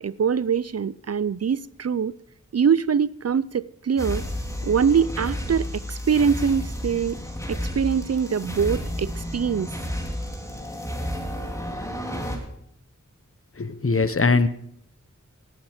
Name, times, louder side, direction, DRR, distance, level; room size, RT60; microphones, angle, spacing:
voice 1, 0.0-2.1 2.5-4.2 4.6-7.2 7.5-9.7, right 7 dB, 55° right, 0.4 m, -23 dB
sound 1, 4.0-12.4, equal, 10° left, 3.6 m, -31 dB
voice 2, 13.6-14.5, left 4 dB, 45° left, 0.9 m, -21 dB
18.0 x 9.0 x 5.0 m
wide cardioid pair, 50°, 31 cm